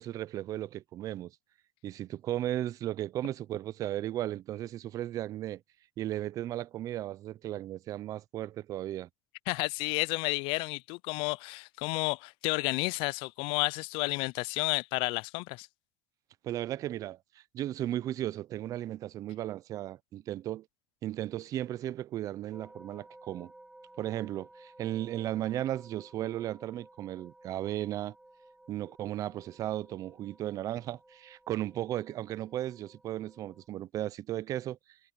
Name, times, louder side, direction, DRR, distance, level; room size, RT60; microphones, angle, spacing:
voice 1, 0.0-1.3 1.8-5.6 6.0-9.1 16.4-20.7 21.0-23.5 24.0-28.1 28.7-34.8, right 13 dB, 30° right, 0.4 m, -35 dB
voice 2, 9.5-15.7, left 26 dB, 50° left, 0.3 m, -31 dB
sound 1, 22.5-33.7, right 1 dB, 5° right, 2.7 m, -56 dB
supercardioid pair, 145°, 11 cm